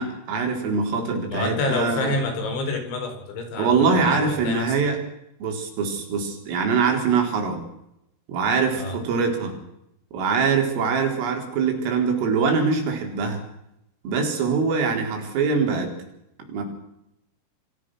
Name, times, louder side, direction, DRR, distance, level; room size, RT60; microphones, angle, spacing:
voice 1, 0.0-2.2 3.6-5.0 5.4-7.6 8.3-9.6 10.1-13.4 14.0-15.9 16.5-16.6, right 5 dB, 75° right, 3 dB, 6.8 m, -23 dB
voice 2, 1.3-4.8 8.8-9.0, left 3 dB, 65° left, 5 dB, 6.5 m, -28 dB
27.0 x 17.5 x 6.4 m, 0.81 s
omnidirectional pair, 5.9 m